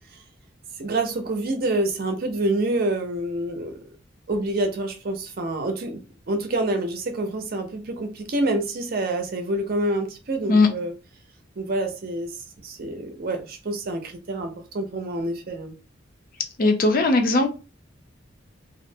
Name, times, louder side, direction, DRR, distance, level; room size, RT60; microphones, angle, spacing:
voice 1, 0.8-3.8 4.3-10.9 11.6-12.4 12.6-15.8, right 2 dB, 50° right, 5 dB, 0.5 m, -27 dB
voice 2, 16.6-17.5, left 3 dB, 50° left, 5 dB, 0.5 m, -18 dB
2.4 x 2.0 x 2.6 m, 0.31 s
head